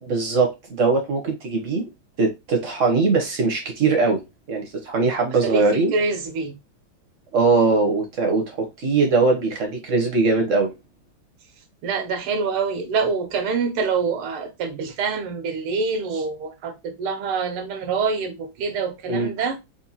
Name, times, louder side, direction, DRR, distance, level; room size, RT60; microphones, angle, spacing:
voice 1, 0.0-1.9 2.2-4.2 4.5-5.9 7.3-10.7 19.1-19.3, right 3 dB, 60° right, 0.8 m, -21 dB
voice 2, 5.9-6.5 11.8-19.6, right 5 dB, 90° right, 1.8 m, -25 dB
4.5 x 2.5 x 2.7 m
omnidirectional pair, 2.3 m